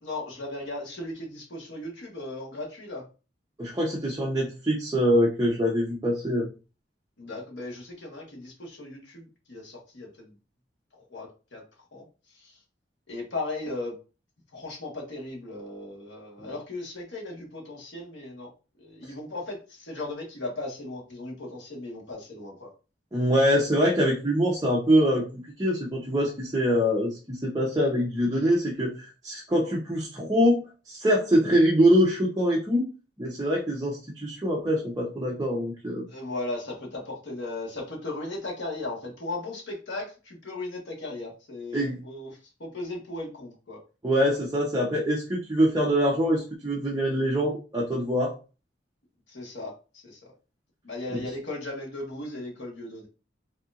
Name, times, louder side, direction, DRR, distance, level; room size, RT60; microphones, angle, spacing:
voice 1, 0.0-3.0 7.2-10.3 11.0-11.6 11.9-12.0 12.4-12.5 13.1-13.9 14.5-18.5 18.8-22.7 36.1-42.3 42.6-43.8 49.3-50.2 50.8-53.1, left 2 dB, 85° left, 0 dB, 1.4 m, -37 dB
voice 2, 3.6-6.5 16.4-16.5 23.1-32.8 33.2-36.0 41.7-42.0 44.0-48.3, equal, 20° right, -4 dB, 0.7 m, -24 dB
4.2 x 2.8 x 2.5 m, 0.33 s
head